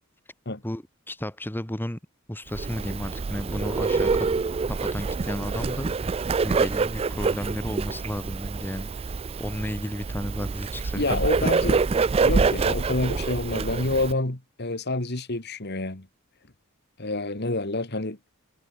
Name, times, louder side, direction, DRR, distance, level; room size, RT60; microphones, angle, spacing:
voice 1, 0.6-2.0 2.3-4.3 4.7-6.1 6.4-8.9 9.4-11.2 11.6-11.8, equal, 10° left, 1.4 m, -33 dB
Bird, 2.5-14.1, right 4 dB, 25° right, 0.3 m, -26 dB
voice 2, 11.0-11.8 12.2-16.1 17.0-18.2, left 2 dB, 50° left, 2.3 m, -28 dB
head